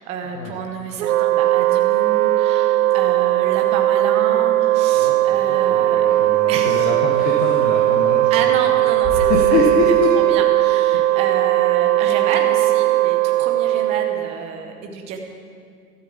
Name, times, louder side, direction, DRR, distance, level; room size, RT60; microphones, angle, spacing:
voice 1, 0.0-6.0 6.5-7.0 8.3-9.6 10.1-15.2, right 5 dB, 15° right, 3 dB, 0.7 m, -30 dB
Wind instrument woodwind instrument, 1.0-14.4, right 14 dB, 60° right, 0.6 m, -18 dB
sound 1, 2.7-11.0, right 1 dB, 10° left, 3.7 m, -38 dB
voice 2, 4.9-8.5 9.2-10.2 10.9-11.2, left 4 dB, 30° left, 0 dB, 1.2 m, -25 dB
13.0 x 7.3 x 7.4 m, 2.2 s
hypercardioid pair, 140°, 48 cm